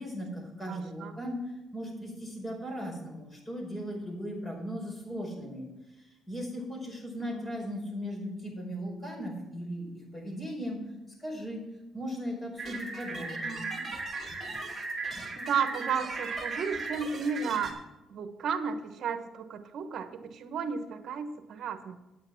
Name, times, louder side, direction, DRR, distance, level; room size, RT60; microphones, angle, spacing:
voice 1, 0.0-1.4 1.7-5.7 6.0-10.8 11.2-11.6 11.9-13.6, equal, 20° left, 0 dB, 5.0 m, -37 dB
voice 2, 0.7-1.1 7.2-7.6 13.4-13.8 15.4-17.8 18.1-21.9, right 6 dB, 65° right, 8 dB, 1.2 m, -33 dB
sound 1, 12.6-17.7, right 3 dB, 30° right, 2.7 m, -37 dB
9.3 x 8.7 x 5.9 m, 0.96 s
cardioid pair, 90°, 0 cm